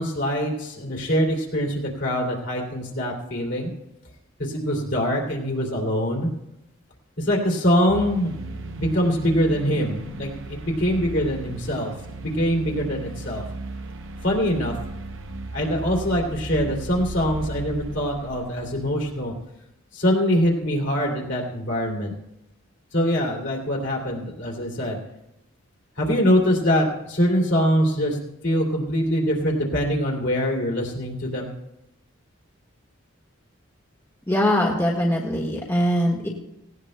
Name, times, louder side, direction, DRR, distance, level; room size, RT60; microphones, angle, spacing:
voice 1, 0.0-3.7 4.4-6.3 7.2-11.9 12.2-13.4 14.2-14.7 15.5-19.3 19.9-22.1 22.9-25.0 26.0-28.2 28.4-31.5, equal, 55° left, -2 dB, 2.6 m, -23 dB
sound 1, 7.9-19.4, right 2 dB, 65° right, 0.8 m, -36 dB
voice 2, 34.3-36.3, equal, 15° left, -2 dB, 1.5 m, -22 dB
17.5 x 17.5 x 2.2 m, 0.88 s
head